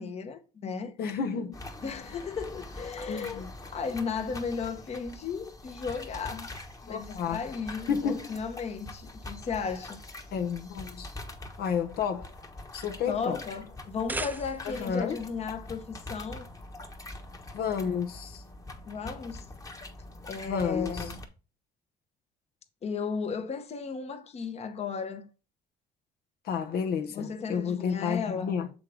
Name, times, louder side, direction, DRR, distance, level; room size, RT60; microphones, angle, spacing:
voice 1, 0.0-0.9 1.8-6.5 6.8-10.0 13.1-16.5 18.9-19.5 20.3-21.2 22.8-25.3 27.1-28.5, left 5 dB, 40° left, 1.0 m, -35 dB
voice 2, 1.0-1.6 3.1-3.5 6.9-7.4 7.9-8.3 10.3-11.1 11.6-12.3 12.7-13.4 14.6-15.2 17.5-18.4 20.4-21.1 26.4-28.7, left 7 dB, 65° left, 0.9 m, -31 dB
sound 1, 1.5-21.3, left 2 dB, 20° left, 1.2 m, -44 dB
sound 2, 13.8-14.9, right 2 dB, 10° right, 0.4 m, -37 dB
7.4 x 3.8 x 4.8 m
cardioid pair, 110°, 17 cm